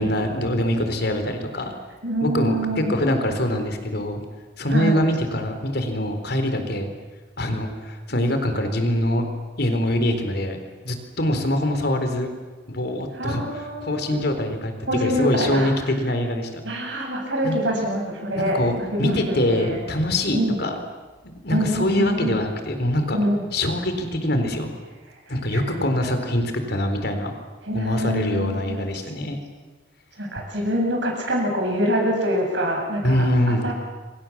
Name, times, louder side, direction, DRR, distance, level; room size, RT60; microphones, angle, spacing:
voice 1, 0.0-1.7 2.2-4.2 4.6-6.9 7.4-9.2 9.6-10.6 10.8-12.3 12.7-14.7 15.0-16.6 17.4-17.6 18.4-18.7 19.0-20.8 21.2-23.2 23.5-24.7 25.3-27.3 27.7-29.4 33.0-33.7, left 1 dB, 55° left, 7 dB, 4.1 m, -24 dB
voice 2, 2.0-3.0 4.7-5.0 13.2-14.3 14.9-15.7 16.6-19.8 20.3-20.6 21.5-22.4 23.1-23.5 25.3-25.6 27.6-28.8 30.2-33.2 33.6-33.7, equal, 65° right, 0 dB, 8.0 m, -25 dB
27.5 x 25.0 x 7.4 m, 1.3 s
head